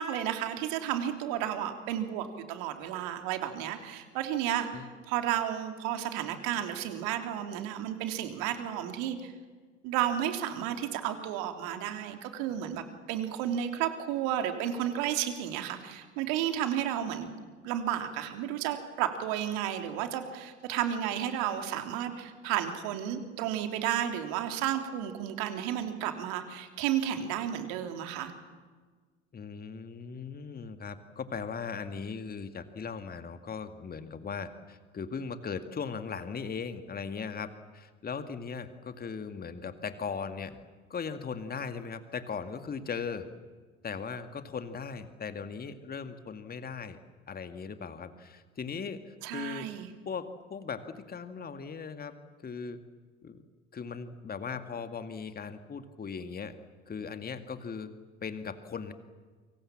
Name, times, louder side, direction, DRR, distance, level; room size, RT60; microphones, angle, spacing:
voice 1, 0.0-9.3 9.8-17.4 17.6-28.3 49.2-49.9, right 10 dB, 60° right, 6 dB, 3.4 m, -32 dB
voice 2, 29.3-37.5 37.7-40.6 40.9-43.3 43.8-47.0 47.3-49.7 50.1-52.2 52.4-52.8 53.2-53.4 53.7-56.6 56.9-57.9 58.2-58.9, left 5 dB, 25° left, 9 dB, 2.0 m, -38 dB
29.5 x 25.5 x 7.5 m, 1.4 s
figure-of-eight pair, 70°, 37 cm